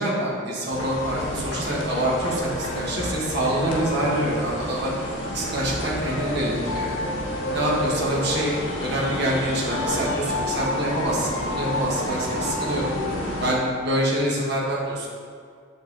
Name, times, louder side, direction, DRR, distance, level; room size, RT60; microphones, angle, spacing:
voice 1, 0.0-4.9 5.3-7.0 7.4-12.9 13.4-15.1, right 1 dB, 55° right, -5 dB, 1.4 m, -26 dB
sound 1, 0.7-13.5, left 1 dB, 70° left, 1.0 m, -29 dB
6.5 x 5.5 x 4.0 m, 2.1 s
head